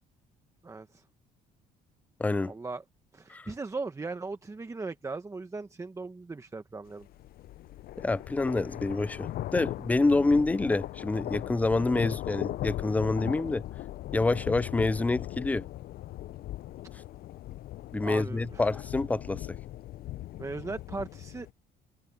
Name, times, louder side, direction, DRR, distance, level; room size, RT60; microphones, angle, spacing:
voice 1, 0.6-1.0 2.4-2.8 3.1-7.1 18.0-18.7 20.4-21.5, right 3 dB, 20° right, 1.2 m, -38 dB
voice 2, 2.2-2.5 3.3-3.5 8.0-13.7 14.1-15.7 17.9-19.6, left 3 dB, 10° left, 0.3 m, -27 dB
sound 1, 7.0-21.5, left 14 dB, 60° left, 0.6 m, -39 dB
cardioid pair, 110°, 17 cm